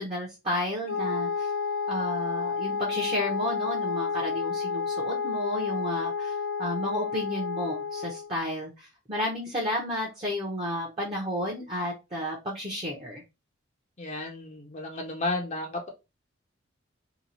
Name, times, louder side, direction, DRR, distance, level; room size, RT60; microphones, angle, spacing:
voice 1, 0.0-1.5 1.9-13.2, left 1 dB, 25° right, -3 dB, 0.7 m, -32 dB
Wind instrument woodwind instrument, 0.9-8.3, left 5 dB, 80° left, 0.8 m, -30 dB
voice 2, 14.0-15.9, left 2 dB, 35° left, 2 dB, 0.6 m, -33 dB
2.9 x 2.3 x 3.9 m, 0.26 s
head